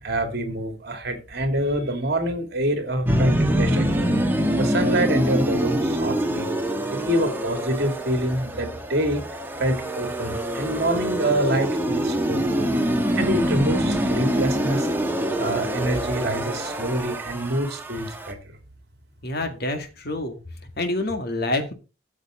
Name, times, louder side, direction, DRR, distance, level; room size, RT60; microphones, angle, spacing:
voice 1, 0.0-4.1 4.6-6.5 6.9-9.2 9.6-12.7 13.2-14.9 15.4-18.4, right 1 dB, 50° right, 2.4 m, -26 dB
sound 1, 3.0-18.3, right 1 dB, 10° right, 1.2 m, -25 dB
voice 2, 19.2-20.4 20.8-21.7, left 2 dB, 50° left, 2.0 m, -27 dB
13.0 x 7.2 x 3.8 m
head